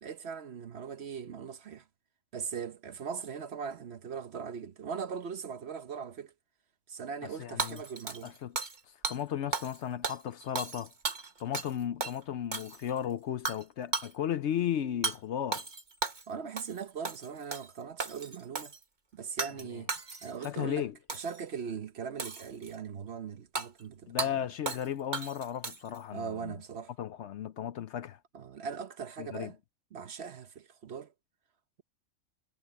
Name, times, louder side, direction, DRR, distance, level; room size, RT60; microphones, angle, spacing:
voice 1, 0.0-1.8 2.3-6.3 6.9-8.3 16.3-18.7 19.1-19.9 20.2-24.5 26.1-26.9 28.3-29.6 29.9-31.1, right 6 dB, 55° right, 1.0 m, -40 dB
voice 2, 7.4-7.8 8.2-8.6 9.1-10.9 11.4-15.6 20.4-20.9 24.1-26.5 27.0-28.2 29.2-29.5, left 10 dB, 65° left, 0.8 m, -35 dB
Hammer / Shatter, 7.6-8.8 9.0-9.2 9.5-9.8 10.0-11.7 12.0-12.2 12.5-13.0 13.5-13.6 13.9-14.1 15.0-15.2 15.5-16.3 16.6-16.8 17.0-17.7 18.0-18.8 19.4-19.6 19.9-20.5 21.1-21.4 22.2-22.8 23.6-23.7 24.2-24.3 24.7-24.9 25.1-26.0, right 4 dB, 35° right, 1.4 m, -35 dB
omnidirectional pair, 1.4 m